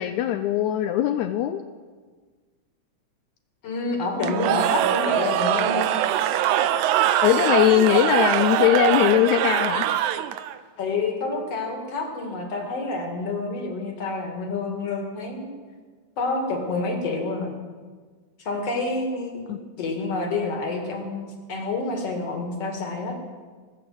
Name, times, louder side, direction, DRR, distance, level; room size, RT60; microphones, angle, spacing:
voice 1, 0.0-1.6 7.2-9.9 19.5-19.6, left 11 dB, 80° left, 8 dB, 1.9 m, -20 dB
voice 2, 3.6-5.9 10.8-15.5 16.2-17.5 18.4-19.5 19.8-23.2, left 3 dB, 55° left, 2 dB, 2.8 m, -28 dB
Cheering / Crowd, 4.2-10.6, right 11 dB, 85° right, 2.0 m, -22 dB
19.0 x 6.6 x 7.7 m, 1.5 s
omnidirectional pair, 3.5 m